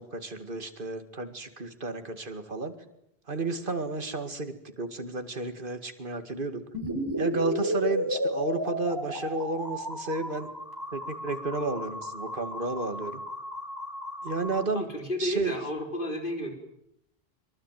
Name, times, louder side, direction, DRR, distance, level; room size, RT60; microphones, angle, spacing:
voice 1, 0.0-2.7 3.3-6.6 7.2-10.5 10.9-13.2 14.2-14.9 15.2-15.5, right 3 dB, 55° right, 8 dB, 2.4 m, -32 dB
sound 1, 6.7-14.6, equal, 20° right, 4.6 m, -33 dB
voice 2, 14.7-16.5, equal, 55° left, 4 dB, 4.5 m, -32 dB
24.0 x 23.0 x 9.3 m, 0.79 s
omnidirectional pair, 1.0 m